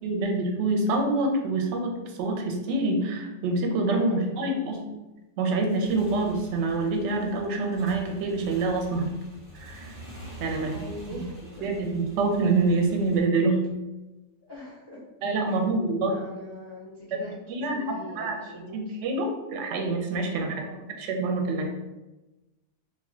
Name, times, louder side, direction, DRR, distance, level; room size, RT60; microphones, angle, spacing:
voice 1, 0.0-4.8 5.4-9.1 9.5-9.9 10.4-10.8 11.1-11.2 11.6-13.6 15.2-16.2 17.1-17.2 17.5-18.4 18.7-20.6 21.0-21.7, right 3 dB, 65° right, 2 dB, 0.8 m, -26 dB
voice 2, 4.0-4.8 10.6-11.7 14.5-15.0 15.4-15.7 16.0-19.0 20.5-20.9, left 1 dB, 40° left, -7 dB, 0.3 m, -43 dB
Motorcycle / Engine, 5.7-13.2, right 1 dB, 30° right, 0.5 m, -46 dB
2.3 x 2.2 x 3.7 m, 1.0 s
omnidirectional pair, 1.4 m